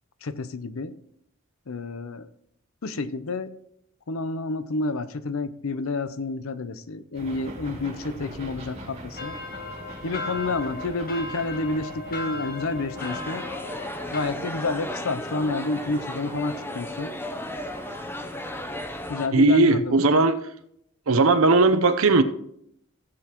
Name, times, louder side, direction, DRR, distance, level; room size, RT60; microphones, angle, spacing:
voice 1, 0.2-1.0 1.7-2.3 2.8-3.5 4.1-9.4 10.0-13.4 14.1-17.1 19.1-20.0, left 3 dB, 80° left, 0.6 m, -29 dB
sound 1, 7.1-19.1, right 1 dB, 30° right, 2.2 m, -43 dB
sound 2, 9.2-14.3, left 3 dB, 45° left, 1.5 m, -36 dB
sound 3, 13.0-19.3, left 1 dB, 10° left, 0.6 m, -35 dB
voice 2, 19.3-20.4 21.1-22.2, right 3 dB, 80° right, 0.8 m, -18 dB
16.0 x 7.9 x 3.0 m
head